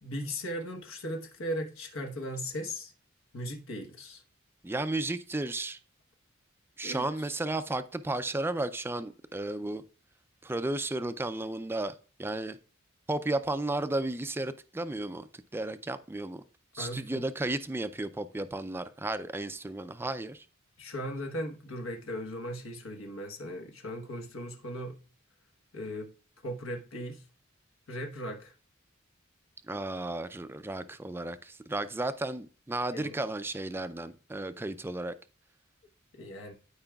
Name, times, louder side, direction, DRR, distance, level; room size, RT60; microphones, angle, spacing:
voice 1, 0.0-2.9 3.3-4.2 6.8-7.4 16.8-17.2 20.8-25.0 25.7-26.1 26.4-27.3 27.9-28.5 32.9-33.2 36.1-36.5, equal, 75° left, 1.2 m, -38 dB
voice 2, 4.6-5.8 6.8-9.8 10.4-12.6 13.1-16.4 16.7-20.5 29.7-35.1, right 2 dB, 10° right, 0.4 m, -33 dB
12.5 x 4.9 x 2.3 m
head